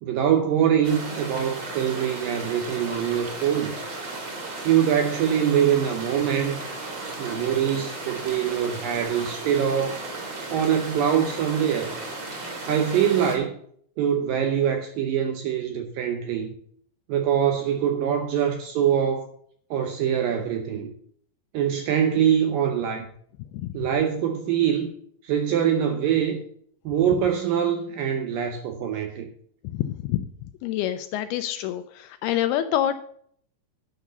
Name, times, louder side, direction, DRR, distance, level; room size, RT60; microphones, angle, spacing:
voice 1, 0.0-3.8 4.6-6.6 7.2-10.0 10.5-11.9 12.7-13.5 14.0-16.5 17.1-19.3 19.7-20.9 21.5-23.1 23.7-24.9 25.2-26.4 26.9-29.3, right 9 dB, 75° right, 4 dB, 2.1 m, -23 dB
sound 1, 0.8-13.4, right 2 dB, 35° right, 2.3 m, -35 dB
voice 2, 29.7-30.3 30.6-33.0, left 12 dB, 80° left, 10 dB, 2.3 m, -26 dB
9.6 x 6.0 x 6.8 m, 0.63 s
omnidirectional pair, 4.9 m